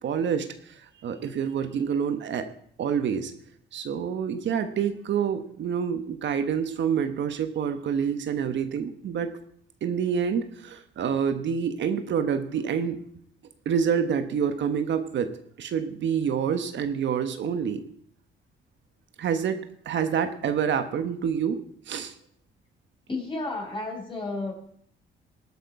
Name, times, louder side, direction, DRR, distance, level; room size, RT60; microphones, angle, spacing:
voice 1, 0.0-2.5 2.8-3.3 3.7-9.3 9.8-13.0 13.6-15.3 15.6-17.8 19.2-22.1, right 7 dB, 65° right, 9 dB, 1.2 m, -27 dB
voice 2, 23.1-24.5, left 2 dB, 25° left, 0 dB, 5.5 m, -32 dB
19.0 x 8.3 x 4.8 m, 0.65 s
cardioid pair, 90°, 20 cm